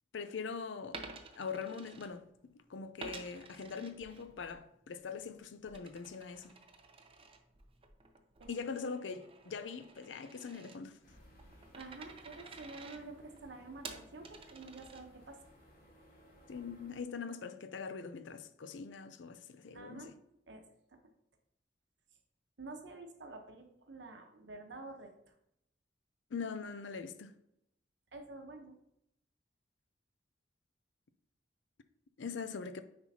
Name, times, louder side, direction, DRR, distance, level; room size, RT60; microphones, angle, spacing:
voice 1, 0.1-1.0 1.4-2.2 2.5-6.5 8.5-11.0 16.5-20.1 26.3-27.3 32.2-32.8, left 5 dB, 85° left, 0.5 m, -42 dB
Coin (dropping), 0.8-2.5 3.0-4.6 5.0-15.4, right 4 dB, 30° right, 0.6 m, -52 dB
sound 1, 11.0-17.0, left 1 dB, 55° left, 1.7 m, -60 dB
voice 2, 11.7-15.4 19.7-20.1 20.5-20.6 20.9-21.0 22.6-25.1 28.1-28.8, right 3 dB, 70° right, 1.0 m, -49 dB
9.4 x 4.4 x 2.8 m
head